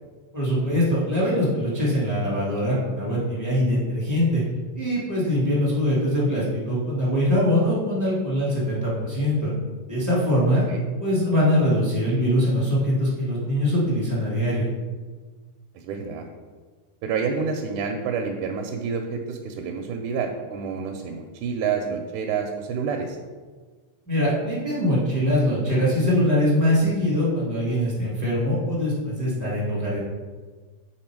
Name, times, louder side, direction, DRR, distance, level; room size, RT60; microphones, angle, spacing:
voice 1, 0.3-4.4 4.7-9.5 9.9-10.6 11.0-14.7 24.1-30.0, equal, 15° left, -7 dB, 0.6 m, -22 dB
voice 2, 15.8-16.2 17.0-23.2, right 5 dB, 80° right, 3 dB, 2.0 m, -28 dB
7.9 x 3.9 x 4.5 m, 1.4 s
omnidirectional pair, 3.5 m